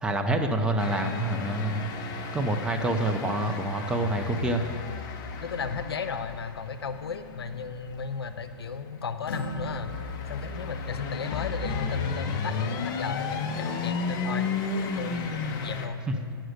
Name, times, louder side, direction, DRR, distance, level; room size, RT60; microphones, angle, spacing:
voice 1, 0.0-1.9 2.3-4.6 16.1-16.2, right 1 dB, 5° right, 4 dB, 0.5 m, -27 dB
sound 1, 0.8-15.9, left 4 dB, 30° left, 0.7 m, -34 dB
voice 2, 5.4-9.9 10.3-14.5 15.0-16.4, left 5 dB, 85° left, 10 dB, 0.7 m, -35 dB
Acoustic guitar, 9.3-12.9, equal, 65° left, 1.5 m, -41 dB
9.0 x 6.4 x 6.4 m, 2.2 s
hypercardioid pair, 135°, 13 cm